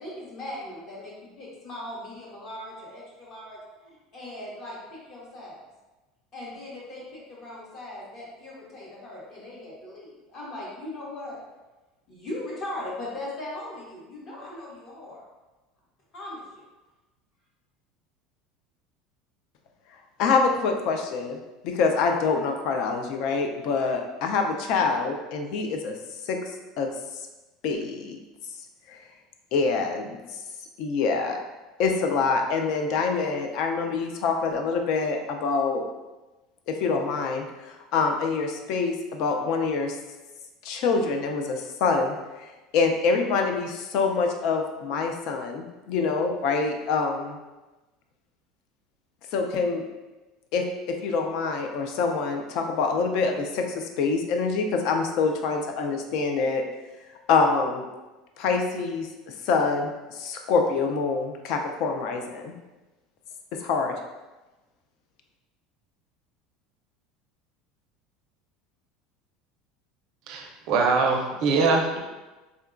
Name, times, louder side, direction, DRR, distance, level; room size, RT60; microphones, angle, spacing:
voice 1, 0.0-5.6 6.3-11.4 12.1-15.2 16.1-16.6, left 1 dB, 35° left, -5 dB, 0.8 m, -39 dB
voice 2, 20.2-21.4 21.6-25.9 26.3-26.4 26.8-26.9 27.6-28.2 28.9-29.0 29.5-30.2 30.8-31.4 31.8-35.8 36.7-40.0 40.6-42.5 42.7-47.4 49.3-49.9 50.5-56.6 57.3-57.8 58.4-62.5 63.6-64.0, left 4 dB, 50° left, 4 dB, 0.3 m, -25 dB
voice 3, 70.3-72.0, right 4 dB, 45° right, 1 dB, 0.4 m, -23 dB
3.7 x 2.2 x 2.4 m, 1.1 s
cardioid pair, 170°, 0 cm